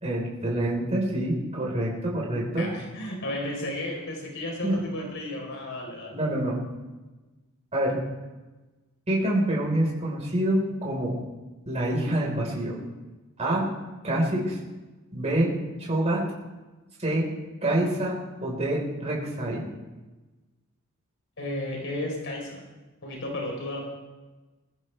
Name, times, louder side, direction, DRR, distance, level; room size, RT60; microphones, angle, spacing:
voice 1, 0.0-2.7 4.6-4.8 6.1-6.6 7.7-8.0 9.1-11.2 11.7-12.8 13.4-13.7 14.0-14.6 15.1-15.5 15.8-16.2 17.0-17.3 17.6-18.1 18.4-19.6, right 1 dB, 30° right, -3 dB, 4.3 m, -26 dB
voice 2, 2.6-6.2 21.4-22.6 23.0-23.9, left 1 dB, 60° left, 0 dB, 4.0 m, -33 dB
22.5 x 14.5 x 3.3 m, 1.2 s
head